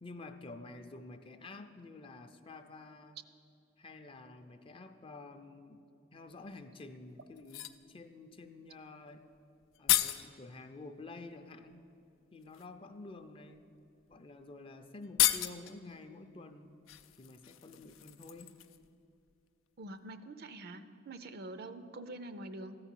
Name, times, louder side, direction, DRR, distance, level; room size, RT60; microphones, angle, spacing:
voice 1, 0.0-3.2 3.8-5.8 6.1-9.2 9.8-11.8 12.3-13.6 14.1-16.7 17.2-18.6, left 3 dB, 25° left, 7 dB, 0.5 m, -50 dB
sound 1, 6.5-6.6 7.4-7.8 9.3-9.4 9.6-10.3 11.7-11.8 12.4-12.7 13.5-13.6 14.0-14.1 14.4-14.5 15.0-15.8 16.9-18.9 19.2-19.3, left 14 dB, 80° left, 0.4 m, -33 dB
voice 2, 19.8-22.8, right 2 dB, 55° right, 11 dB, 0.5 m, -45 dB
14.0 x 4.8 x 9.0 m, 2.6 s
head